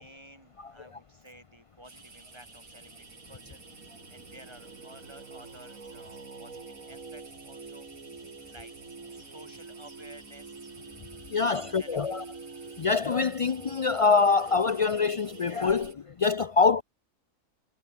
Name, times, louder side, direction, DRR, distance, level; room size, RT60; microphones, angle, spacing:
voice 1, 0.0-8.7 9.1-10.6 11.3-12.1, right 1 dB, 20° right, 5.0 m, -53 dB
sound 1, 1.8-16.0, right 4 dB, 45° right, 2.3 m, -52 dB
Singing, 2.1-15.9, right 4 dB, 80° right, 3.0 m, -47 dB
voice 2, 11.3-12.2 12.8-16.8, left 4 dB, 55° left, 0.3 m, -25 dB
omnidirectional pair, 1.4 m